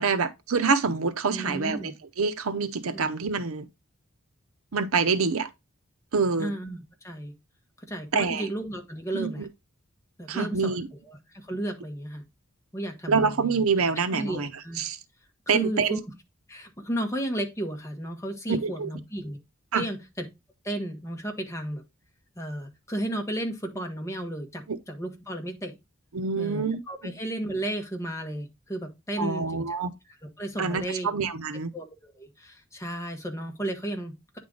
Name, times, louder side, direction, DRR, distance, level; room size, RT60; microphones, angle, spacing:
voice 1, 0.0-3.7 4.7-5.5 6.1-6.5 8.1-8.5 9.1-9.5 10.3-10.9 13.1-14.5 14.8-15.0 15.5-16.0 18.5-18.9 19.7-19.8 24.7-24.8 26.1-26.8 29.2-29.9 30.6-31.7, right 4 dB, 80° right, 0.7 m, -26 dB
voice 2, 1.3-1.9 2.9-3.1 6.4-7.3 7.8-9.5 10.2-10.8 11.0-12.2 12.7-13.6 14.1-14.8 15.5-16.0 16.5-19.4 19.7-20.0 20.6-21.8 22.4-25.8 26.3-29.6 30.4-31.1 31.7-34.4, right 1 dB, 15° left, 1.2 m, -33 dB
9.3 x 3.7 x 3.8 m
head